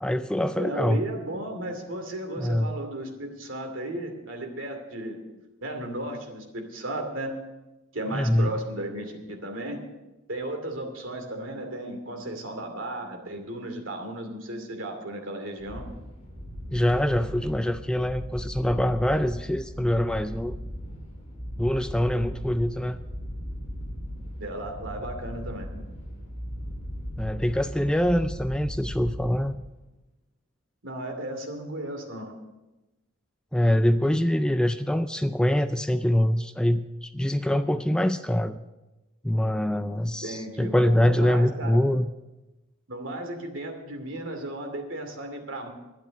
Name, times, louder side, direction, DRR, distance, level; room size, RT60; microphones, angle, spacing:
voice 1, 0.0-1.0 2.4-2.7 8.1-8.5 16.7-20.6 21.6-23.0 27.2-29.5 33.5-38.6 39.2-42.1, left 1 dB, 5° left, 10 dB, 0.3 m, -24 dB
voice 2, 0.6-5.2 5.6-7.3 7.9-9.8 10.3-15.9 24.4-25.7 30.8-32.3 40.2-41.8 42.9-45.7, right 1 dB, 65° right, 4 dB, 2.5 m, -35 dB
sound 1, 15.6-29.9, equal, 35° left, 3.2 m, -37 dB
12.0 x 10.5 x 6.5 m, 1.0 s
head